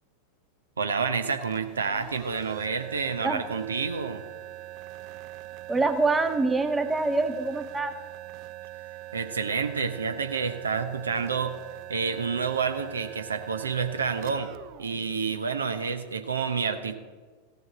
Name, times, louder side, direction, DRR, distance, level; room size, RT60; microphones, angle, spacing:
voice 1, 0.8-4.2 9.1-11.5 11.9-14.5 14.8-17.0, right 5 dB, 70° right, 9 dB, 0.8 m, -29 dB
sound 1, 1.4-16.0, right 15 dB, 45° right, 0.5 m, -43 dB
voice 2, 5.7-7.9, right 3 dB, 10° right, 8 dB, 0.8 m, -25 dB
15.0 x 6.8 x 7.8 m, 1.5 s
figure-of-eight pair, 90°, 0 cm